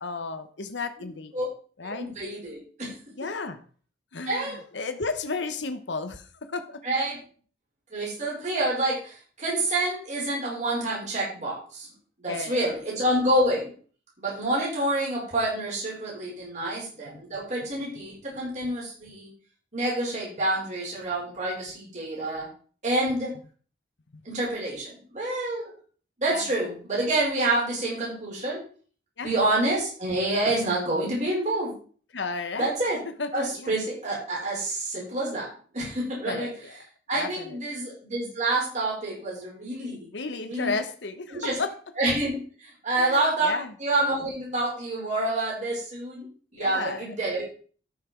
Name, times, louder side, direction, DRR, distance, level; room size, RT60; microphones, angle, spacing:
voice 1, 0.0-1.5 1.8-2.1 3.2-3.6 4.1-6.8 12.3-12.7 17.1-17.2 26.3-26.4 29.2-29.3 30.4-30.7 32.1-32.9 33.2-33.7 36.2-36.7 37.1-37.6 40.1-41.7 42.9-43.7 46.6-47.1, left 4 dB, 85° left, 9 dB, 1.0 m, -33 dB
voice 2, 2.0-3.0 4.3-4.6 6.8-7.2 7.9-11.9 12.2-13.7 14.2-19.3 19.7-22.5 22.8-23.3 24.3-25.7 26.2-28.6 29.2-31.7 32.6-33.0 33.3-35.5 35.7-36.5 37.1-40.1 40.5-40.7 41.3-41.6 42.0-47.4, right 1 dB, 45° right, -4 dB, 5.3 m, -28 dB
13.0 x 5.9 x 4.5 m, 0.42 s
head